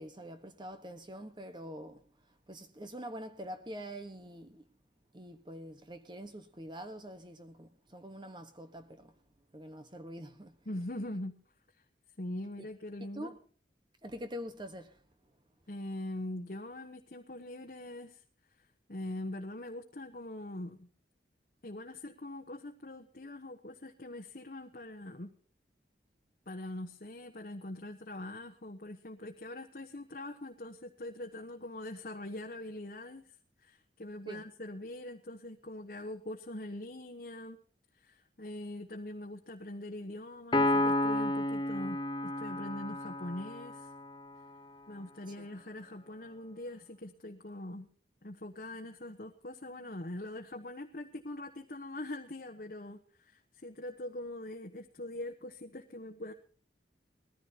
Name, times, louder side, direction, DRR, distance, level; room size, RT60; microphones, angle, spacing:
voice 1, 0.0-2.0 2.5-4.7 5.1-9.1 9.5-10.6 12.6-12.7 13.1-13.4 14.0-15.0 34.3-34.4, equal, 25° right, 1.2 m, -45 dB
voice 2, 10.6-11.3 12.2-13.3 15.7-18.2 18.9-20.9 21.6-25.3 26.5-37.6 38.0-43.9 44.9-47.9 48.2-56.3, left 1 dB, 50° left, 1.1 m, -43 dB
Piano, 40.5-44.1, left 1 dB, 25° left, 0.8 m, -31 dB
21.0 x 14.5 x 2.9 m
head